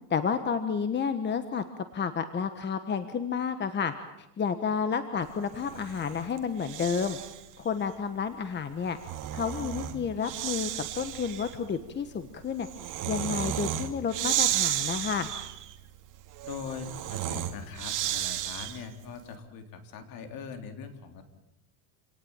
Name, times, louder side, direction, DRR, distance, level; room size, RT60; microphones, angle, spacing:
voice 1, 0.1-1.6 1.9-3.9 4.4-7.2 7.6-9.0 9.3-12.7 13.1-15.3, left 6 dB, 25° left, 10 dB, 1.4 m, -30 dB
Breathing, 5.5-7.5 8.7-19.0, right 12 dB, 45° right, 2.4 m, -33 dB
voice 2, 16.4-21.2, left 6 dB, 55° left, 7 dB, 3.9 m, -41 dB
28.0 x 18.5 x 9.1 m, 0.89 s
cardioid pair, 135°, 42 cm